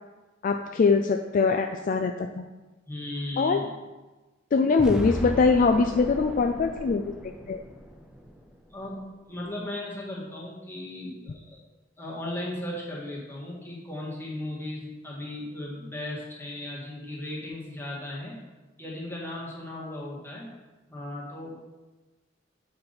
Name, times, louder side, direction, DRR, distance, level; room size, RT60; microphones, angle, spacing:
voice 1, 0.4-2.5 3.4-3.6 4.5-7.1 7.5-7.6, left 4 dB, 45° left, 5 dB, 0.3 m, -23 dB
voice 2, 2.9-3.7 8.7-9.0 9.3-11.6 12.0-18.4 18.8-20.5 20.9-21.5, left 1 dB, 10° left, -5 dB, 1.8 m, -36 dB
sound 1, 4.8-8.9, equal, 5° right, 0.6 m, -37 dB
8.0 x 4.1 x 5.2 m, 1.2 s
head